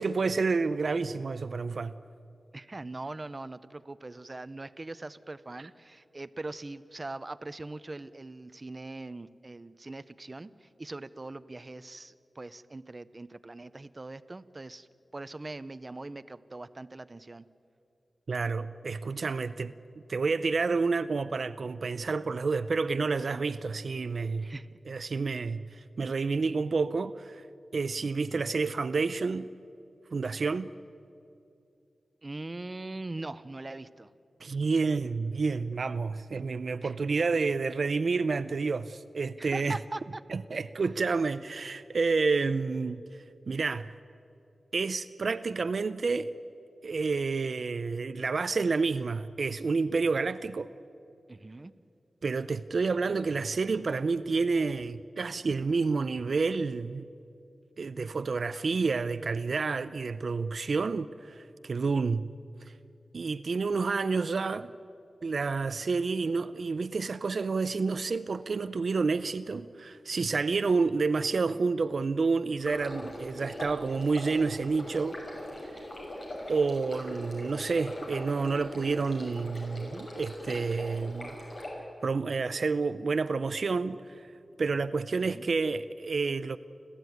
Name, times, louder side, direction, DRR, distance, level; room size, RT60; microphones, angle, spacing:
voice 1, 0.0-1.9 18.3-19.7 20.1-24.5 24.9-27.4 27.7-29.5 30.1-30.7 34.4-39.8 40.3-43.9 44.7-46.3 46.8-50.7 52.2-57.1 57.8-62.3 63.1-64.7 65.2-75.2 76.5-81.4 82.0-84.3 84.6-86.6, right 4 dB, 70° right, 0.5 m, -29 dB
voice 2, 2.5-14.9 15.1-17.4 24.4-24.7 32.2-34.1 36.8-37.0 39.4-40.2 51.3-51.7 85.2-85.5, right 2 dB, 35° right, 0.7 m, -41 dB
Stream, 72.6-81.7, left 1 dB, 55° left, 6.7 m, -41 dB
30.0 x 13.0 x 9.4 m
wide cardioid pair, 80°, 0 cm